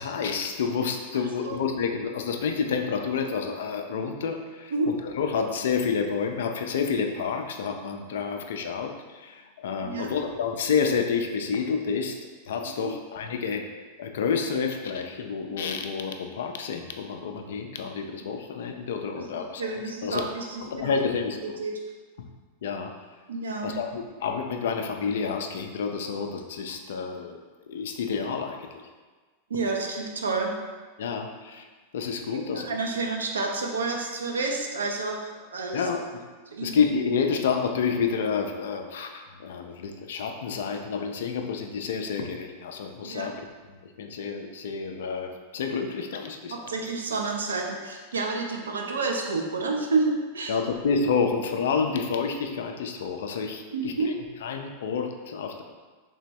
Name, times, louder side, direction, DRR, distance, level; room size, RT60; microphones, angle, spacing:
voice 1, 0.0-12.2 12.5-13.6 14.0-19.7 20.0-20.3 20.6-21.4 22.2-22.3 22.6-22.9 23.6-27.4 27.7-28.7 31.0-31.7 31.9-32.8 35.7-36.2 36.6-43.5 44.0-46.7 50.5-54.0 54.4-55.6, left 5 dB, 60° left, 5 dB, 0.3 m, -29 dB
voice 2, 9.8-10.1 12.8-12.9 19.2-19.3 19.6-20.9 21.6-21.7 23.3-23.8 29.5-30.6 32.3-35.9 36.5-36.8 43.0-43.3 46.5-50.6 53.7-54.1, right 3 dB, 70° right, 1 dB, 0.5 m, -29 dB
3.3 x 3.2 x 3.0 m, 1.4 s
figure-of-eight pair, 90°, 0 cm